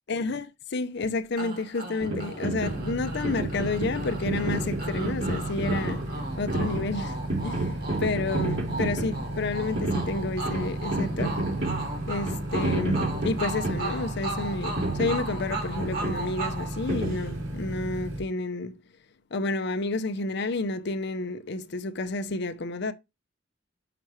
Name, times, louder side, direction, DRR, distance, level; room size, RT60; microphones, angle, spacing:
voice 1, 0.1-11.4 12.1-18.8 19.3-22.9, left 3 dB, 60° left, 0.6 m, -30 dB
sound 1, 1.4-17.6, right 2 dB, 50° right, 2.1 m, -37 dB
sound 2, 2.0-17.8, right 2 dB, 70° right, 2.8 m, -32 dB
sound 3, 2.6-18.2, right 1 dB, 85° right, 1.9 m, -35 dB
5.9 x 5.8 x 3.1 m
head